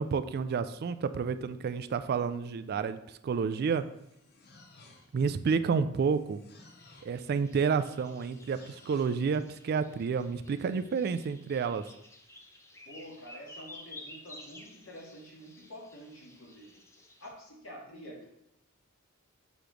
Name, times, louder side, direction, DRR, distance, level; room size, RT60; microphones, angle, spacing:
voice 1, 0.0-3.8 5.1-6.4 7.0-11.8, right 5 dB, 50° right, 13 dB, 0.3 m, -30 dB
sound 1, 3.7-5.3 6.0-7.2 8.2-9.2, left 3 dB, 50° left, 0.9 m, -57 dB
sound 2, 6.8-17.3, left 1 dB, 15° left, 0.6 m, -53 dB
voice 2, 12.8-16.8 17.2-18.3, equal, 75° left, -4 dB, 2.3 m, -48 dB
6.7 x 3.1 x 5.0 m, 0.79 s
head